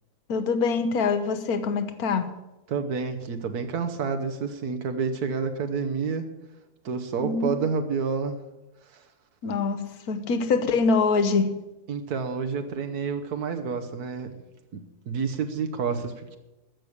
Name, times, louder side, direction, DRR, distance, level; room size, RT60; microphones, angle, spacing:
voice 1, 0.3-2.3 7.2-7.6 9.4-11.6, left 4 dB, 75° left, 11 dB, 1.5 m, -24 dB
voice 2, 2.7-6.3 6.8-8.4 8.8-9.1 11.9-14.3 14.7-16.4, right 5 dB, 85° right, 7 dB, 1.5 m, -29 dB
14.0 x 6.6 x 8.6 m, 1.0 s
omnidirectional pair, 1.6 m